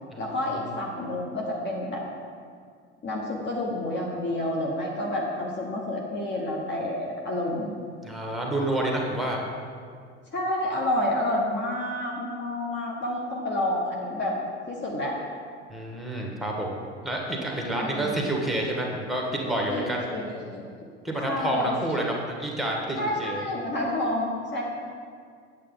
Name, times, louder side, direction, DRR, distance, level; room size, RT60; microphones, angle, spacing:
voice 1, 0.2-2.0 3.0-7.8 10.3-14.3 14.7-15.1 17.8-18.1 19.7-20.6 21.2-21.7 23.0-24.6, left 1 dB, 30° left, -2 dB, 1.1 m, -29 dB
voice 2, 8.0-9.4 15.7-20.1 21.0-23.4, right 1 dB, ahead, -1 dB, 1.5 m, -29 dB
8.4 x 7.6 x 3.9 m, 2.1 s
figure-of-eight pair, 70°, 36 cm